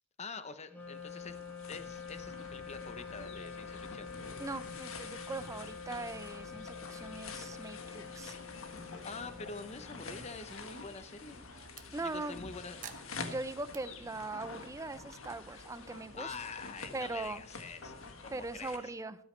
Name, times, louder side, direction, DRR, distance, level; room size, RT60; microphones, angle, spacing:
voice 1, 0.2-1.4 1.7-4.1 9.0-11.4 12.0-12.9 16.1-18.9, left 4 dB, 30° left, 11 dB, 0.7 m, -46 dB
Wind instrument woodwind instrument, 0.7-10.2, left 6 dB, 10° left, 1.8 m, -47 dB
sound 1, 0.8-18.8, left 4 dB, 80° left, 1.5 m, -48 dB
voice 2, 4.4-8.4 11.9-12.4 13.3-16.3 16.9-17.4 18.3-19.2, right 2 dB, 15° right, 13 dB, 0.5 m, -40 dB
sound 2, 8.5-11.9 12.8-13.8, right 7 dB, 40° right, 0.8 m, -55 dB
13.5 x 13.0 x 3.2 m, 0.69 s
head